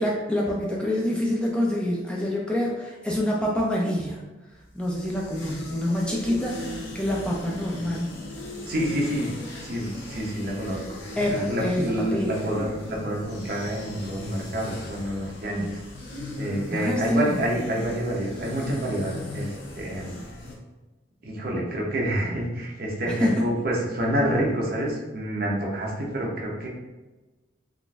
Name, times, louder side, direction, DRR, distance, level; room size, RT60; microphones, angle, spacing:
voice 1, 0.0-4.2 4.8-8.2 11.2-12.3 15.5-15.7 16.7-17.4 23.1-23.4, left 1 dB, 5° left, -3 dB, 0.3 m, -26 dB
sound 1, 4.6-20.5, left 1 dB, 85° left, 0.7 m, -38 dB
voice 2, 8.7-9.3 9.6-10.8 11.3-15.8 16.4-20.2 21.2-26.7, right 1 dB, 50° right, -3 dB, 0.7 m, -28 dB
3.7 x 2.4 x 2.4 m, 1.1 s
head